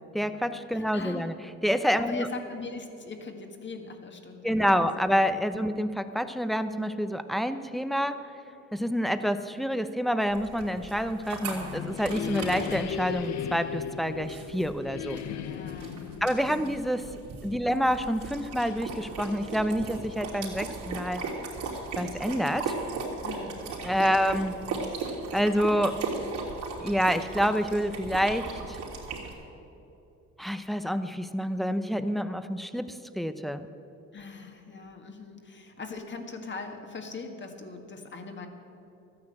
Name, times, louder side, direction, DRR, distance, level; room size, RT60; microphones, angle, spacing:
voice 1, 0.1-1.3 1.6-2.3 4.4-8.2 8.7-15.2 16.2-17.0 17.4-21.2 22.0-22.7 23.8-24.5 25.3-26.0 26.8-28.8 30.4-33.7, equal, ahead, 10 dB, 0.7 m, -28 dB
voice 2, 0.7-1.3 2.1-5.1 5.5-5.7 15.4-16.8 23.2-24.2 34.1-38.5, left 4 dB, 40° left, 5 dB, 1.8 m, -41 dB
sound 1, 10.3-29.3, right 4 dB, 75° right, 3.1 m, -37 dB
sound 2, 11.2-17.9, left 8 dB, 65° left, 0.7 m, -37 dB
13.0 x 9.7 x 7.7 m, 2.8 s
cardioid pair, 90°, 30 cm